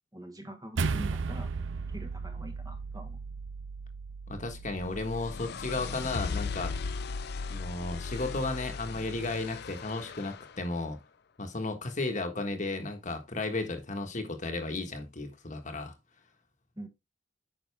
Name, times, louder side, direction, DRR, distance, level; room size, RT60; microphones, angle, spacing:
voice 1, 0.1-1.5 1.9-3.2 16.8-16.9, right 1 dB, 20° right, 1.3 m, -44 dB
sound 1, 0.8-5.3, right 4 dB, 70° right, 0.6 m, -35 dB
voice 2, 4.3-6.8 7.5-11.0 11.4-15.9, left 2 dB, 40° left, 1.4 m, -34 dB
sound 2, 4.5-10.6, left 4 dB, 55° left, 0.5 m, -37 dB
9.3 x 5.9 x 3.4 m
head